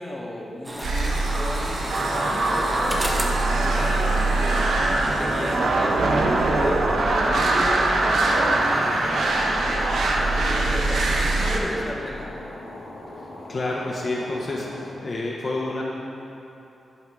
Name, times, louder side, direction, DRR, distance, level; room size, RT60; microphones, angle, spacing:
voice 1, 0.0-3.5 3.7-4.8 5.0-9.9 10.2-12.3, left 1 dB, 10° left, -2 dB, 0.9 m, -35 dB
sound 1, 0.6-4.7 5.0-5.1, right 1 dB, 20° right, 0.7 m, -34 dB
sound 2, 0.8-11.6, right 2 dB, 75° right, 0.8 m, -22 dB
sound 3, 3.5-14.9, left 1 dB, 90° left, 1.4 m, -40 dB
voice 2, 13.1-15.8, left 2 dB, 35° left, -3 dB, 0.6 m, -29 dB
9.5 x 3.6 x 6.0 m, 3.0 s
wide cardioid pair, 155°, 0 cm